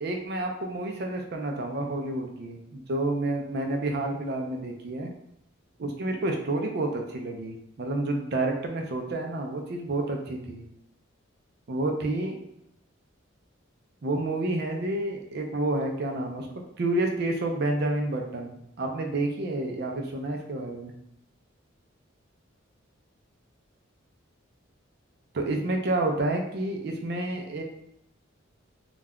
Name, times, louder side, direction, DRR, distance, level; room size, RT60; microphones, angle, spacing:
voice 1, 0.0-5.1 5.8-10.6 11.7-12.4 14.0-16.5 16.8-20.9 25.3-27.6, right 2 dB, 55° right, 3 dB, 0.4 m, -29 dB
2.4 x 2.1 x 3.5 m, 0.78 s
head